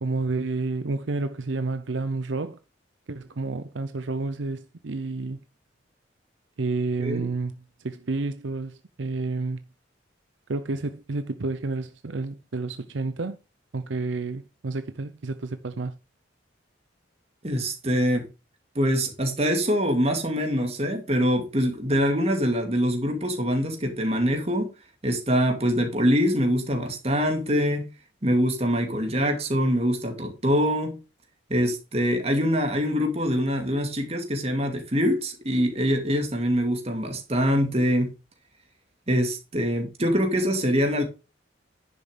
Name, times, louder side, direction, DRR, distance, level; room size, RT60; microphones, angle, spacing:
voice 1, 0.0-2.6 3.1-5.4 6.6-7.5 7.8-9.6 10.5-13.4 13.7-15.9, right 3 dB, 75° right, 0.7 m, -30 dB
voice 2, 17.4-18.3 18.8-24.7 25.0-27.9 28.2-31.0 31.5-38.1 39.1-41.0, equal, 30° right, 2.4 m, -24 dB
10.5 x 7.0 x 3.8 m
head